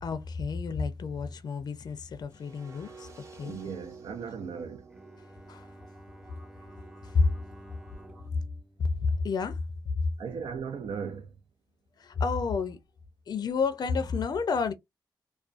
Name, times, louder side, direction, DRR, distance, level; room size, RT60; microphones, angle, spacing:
voice 1, 0.0-3.6 5.5-5.7 7.0-7.3 8.8-9.6 10.0-10.1 12.0-12.8 13.3-14.7, left 4 dB, 55° left, 0.4 m, -30 dB
sound 1, 2.3-8.3, right 4 dB, 40° right, 0.8 m, -52 dB
voice 2, 3.4-4.9 10.2-11.3, right 6 dB, 75° right, 0.5 m, -37 dB
Bowed string instrument, 4.9-9.9, right 1 dB, 5° right, 0.4 m, -52 dB
2.3 x 2.2 x 2.4 m
cardioid pair, 100°, 8 cm